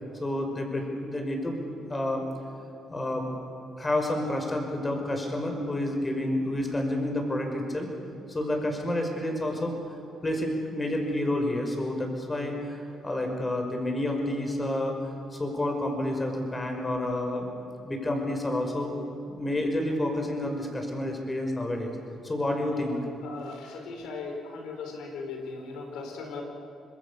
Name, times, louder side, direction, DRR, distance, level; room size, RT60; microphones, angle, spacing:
voice 1, 0.2-2.3 2.9-3.3 3.8-7.9 8.3-9.7 10.2-14.9 15.3-17.5 17.9-18.9 19.3-21.9 22.2-23.0, left 1 dB, 20° left, 3 dB, 5.7 m, -29 dB
voice 2, 23.2-26.4, left 4 dB, 85° left, 3 dB, 4.7 m, -38 dB
26.5 x 21.5 x 7.1 m, 2.8 s
cardioid pair, 90°, 0 cm